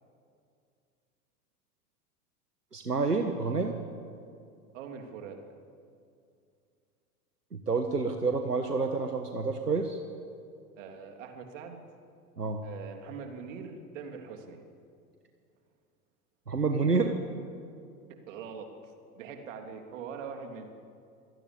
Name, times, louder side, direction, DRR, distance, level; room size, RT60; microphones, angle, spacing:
voice 1, 2.7-3.8 7.5-10.0 12.4-12.6 16.5-17.2, right 4 dB, 85° right, 5 dB, 1.5 m, -28 dB
voice 2, 4.7-5.4 10.8-11.8 12.6-14.6 18.1-20.7, right 6 dB, 55° right, 4 dB, 3.3 m, -43 dB
26.0 x 17.5 x 8.6 m, 2.4 s
figure-of-eight pair, 90°, 46 cm